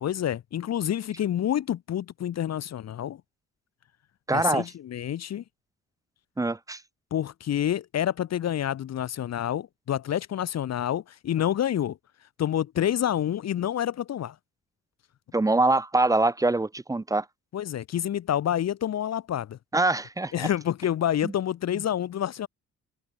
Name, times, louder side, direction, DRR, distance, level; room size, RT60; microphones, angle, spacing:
voice 1, 0.0-3.2 4.3-5.4 7.1-12.0 12.4-14.3 17.5-19.6 20.3-22.5, left 10 dB, 60° left, 1.3 m, -28 dB
voice 2, 4.3-4.7 6.4-6.8 15.3-17.2 19.7-20.5 21.2-21.3, right 2 dB, 10° right, 0.6 m, -24 dB
cardioid pair, 90°, 30 cm